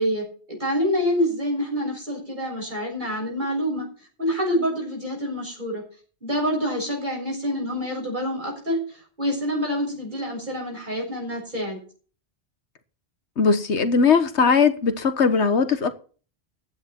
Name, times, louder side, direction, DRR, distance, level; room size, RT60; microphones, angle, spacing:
voice 1, 0.0-3.9 4.2-5.8 6.2-8.8 9.2-11.8, equal, 45° right, 6.8 m, -26 dB
voice 2, 13.4-15.9, left 5 dB, 85° left, 1.6 m, -19 dB
15.0 x 9.8 x 4.5 m
omnidirectional pair, 1.1 m